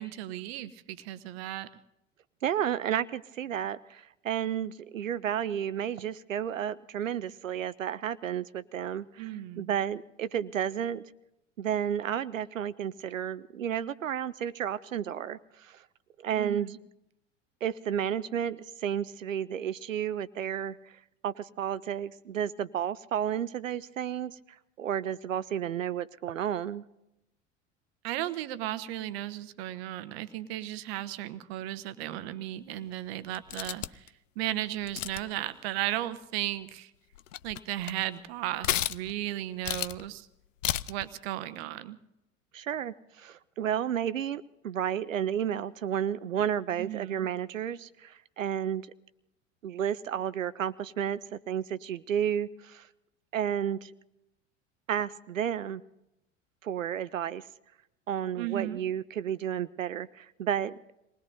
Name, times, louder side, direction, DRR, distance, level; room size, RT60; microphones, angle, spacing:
voice 1, 0.0-1.7 9.2-9.7 16.4-16.8 28.0-36.9 37.4-40.3 40.9-42.0 46.8-47.3 58.4-58.8, right 14 dB, 55° right, 14 dB, 1.0 m, -35 dB
voice 2, 2.4-11.0 11.6-15.8 16.2-16.8 17.6-20.9 21.2-24.4 24.8-26.8 42.5-48.9 49.6-52.9 53.3-53.9 54.9-55.8 56.6-57.5 58.1-60.8, right 9 dB, 85° right, 17 dB, 0.6 m, -32 dB
sound 1, 33.3-34.1 34.8-35.4 36.7-36.8 37.2-38.0 38.6-39.2 39.6-40.1 40.6-41.1, left 12 dB, 75° left, 0.5 m, -32 dB
27.0 x 20.0 x 2.6 m, 0.88 s
figure-of-eight pair, 80°, 38 cm